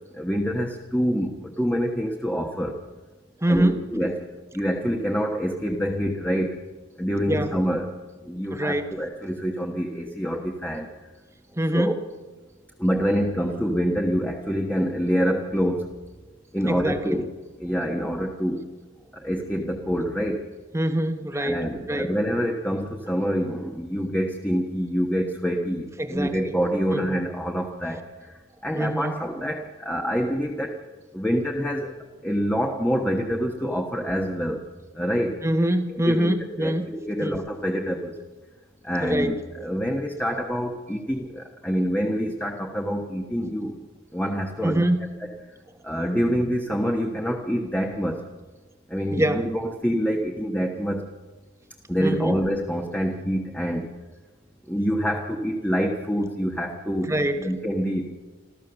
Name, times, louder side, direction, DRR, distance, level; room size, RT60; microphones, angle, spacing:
voice 1, 0.1-2.8 3.5-4.3 4.5-6.6 7.0-7.9 8.2-10.9 11.7-11.9 12.8-15.9 16.5-17.3 17.6-18.7 19.1-20.4 21.4-28.3 28.6-30.8 31.1-31.9 32.2-34.6 34.9-35.4 36.0-36.3 36.6-38.2 38.8-43.7 44.1-44.8 45.8-48.2 48.9-51.1 51.9-53.9 54.7-58.1, equal, 5° left, 1 dB, 1.3 m, -26 dB
voice 2, 3.4-3.8 7.3-7.6 8.5-9.0 11.5-12.0 16.7-17.2 20.7-21.6 21.9-22.1 26.0-26.5 26.9-27.2 28.7-29.1 35.4-36.9 37.2-37.4 39.0-39.3 44.6-45.1 49.1-49.5 52.0-52.3 57.1-57.4, right 1 dB, 15° right, 7 dB, 1.2 m, -24 dB
27.5 x 14.0 x 6.9 m, 1.3 s
head